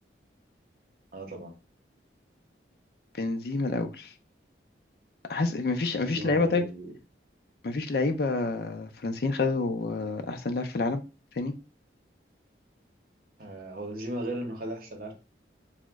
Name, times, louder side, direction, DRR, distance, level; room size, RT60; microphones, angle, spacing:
voice 1, 1.1-1.5 5.9-7.0 13.4-15.1, right 1 dB, 50° right, 2 dB, 0.7 m, -36 dB
voice 2, 3.1-4.1 5.3-6.6 7.6-11.0 11.3-11.5, left 3 dB, 55° left, 7 dB, 0.4 m, -28 dB
2.9 x 2.1 x 3.4 m, 0.30 s
head